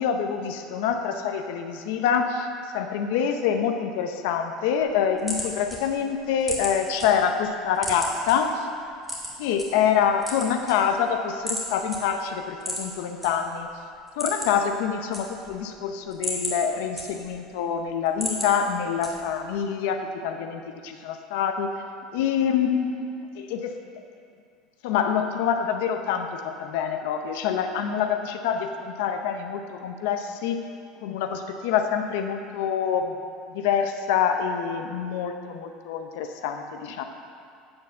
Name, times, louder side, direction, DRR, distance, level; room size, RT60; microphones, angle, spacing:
voice 1, 0.0-2.5 2.7-8.7 9.4-13.7 14.2-21.8 22.1-23.0 23.4-23.7 24.8-30.6 31.0-33.2 33.5-37.0, left 7 dB, 75° left, 6 dB, 0.6 m, -26 dB
sound 1, 4.8-7.1 7.4-8.3 9.0-9.7 10.1-11.1 11.5-11.6 11.9-12.0 12.6-13.3 13.6-13.7 14.0-14.7 14.9-15.6 16.0-17.5 17.9-18.5 19.0-19.4, equal, 10° right, 2.1 m, -32 dB
8.6 x 4.3 x 6.9 m, 2.3 s
supercardioid pair, 125°, 0 cm